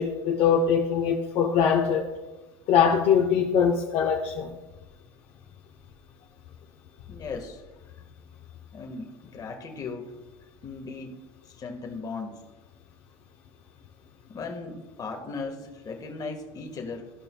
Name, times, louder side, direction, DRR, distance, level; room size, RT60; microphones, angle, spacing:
voice 1, 0.0-2.1 2.7-4.5, left 7 dB, 50° left, -1 dB, 0.8 m, -22 dB
voice 2, 7.1-7.6 8.7-10.1 10.6-11.2 11.5-12.4 14.3-17.1, left 4 dB, 30° left, 3 dB, 1.3 m, -37 dB
14.0 x 5.4 x 2.2 m, 1.1 s
supercardioid pair, 120°, 12 cm